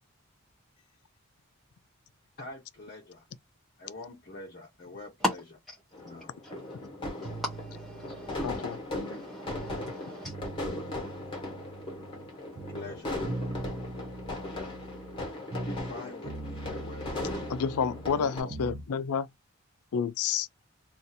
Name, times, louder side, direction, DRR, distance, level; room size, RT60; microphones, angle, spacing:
voice 1, 2.4-3.3 3.8-5.2 6.0-6.3 12.7-13.2 15.6-17.6 18.1-19.0, left 2 dB, 40° left, 0.8 m, -45 dB
sound 1, 5.9-18.4, left 2 dB, 25° left, 1.2 m, -38 dB
voice 2, 6.4-6.8 7.2-8.8 9.1-10.3, equal, ahead, 0.7 m, -37 dB
sound 2, 7.2-9.9 10.2-12.3 12.6-16.0 16.2-18.9, right 2 dB, 50° right, 0.7 m, -41 dB
voice 3, 8.4-8.8 17.5-19.3 19.9-20.5, left 6 dB, 85° left, 0.4 m, -29 dB
2.6 x 2.5 x 4.1 m
head